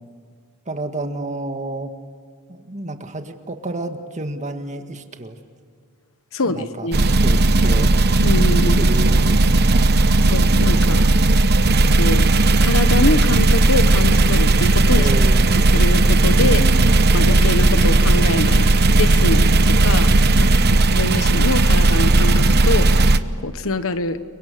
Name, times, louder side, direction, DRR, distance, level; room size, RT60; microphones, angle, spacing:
voice 1, 0.7-1.9 2.5-5.4 6.4-7.9 8.8-10.0 14.9-15.5 16.4-17.2 20.3-20.9, right 1 dB, 35° right, 6 dB, 1.9 m, -30 dB
voice 2, 6.3-7.0 8.2-8.9 10.3-11.1 12.0-15.1 15.5-16.6 17.1-20.2 20.9-24.2, left 2 dB, 65° left, 11 dB, 1.3 m, -24 dB
sound 1, 6.9-23.2, right 2 dB, 50° right, 0.9 m, -15 dB
29.5 x 24.0 x 6.9 m, 2.1 s
head